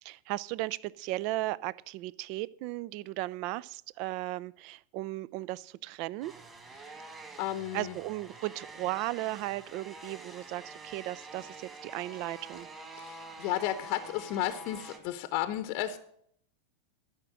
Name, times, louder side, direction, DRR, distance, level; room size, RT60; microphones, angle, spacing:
voice 1, 0.0-6.3 7.7-12.7, right 18 dB, 45° right, 22 dB, 0.4 m, -36 dB
sound 1, 6.2-15.0, right 2 dB, 20° right, 2.3 m, -47 dB
voice 2, 7.4-8.0 12.9-16.0, left 13 dB, 45° left, 11 dB, 0.8 m, -33 dB
13.0 x 5.8 x 7.7 m, 0.67 s
figure-of-eight pair, 90°, 0 cm